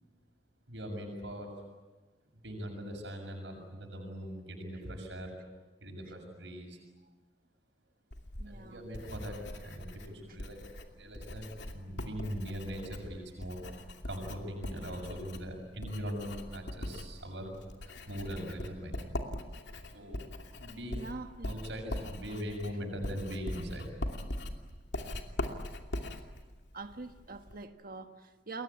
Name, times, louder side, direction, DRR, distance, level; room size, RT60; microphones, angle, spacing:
voice 1, 0.7-1.5 2.3-5.3 5.8-6.8 8.4-17.6 17.9-19.2 19.9-20.2 20.6-21.1 21.5-23.9, equal, 75° right, 6.8 m, -41 dB
Writing, 8.1-27.6, left 1 dB, 70° left, 2.7 m, -42 dB
voice 2, 8.4-8.8 10.3-10.4 20.9-21.7 26.7-28.6, right 3 dB, 50° right, 1.4 m, -44 dB
29.5 x 22.5 x 8.6 m
head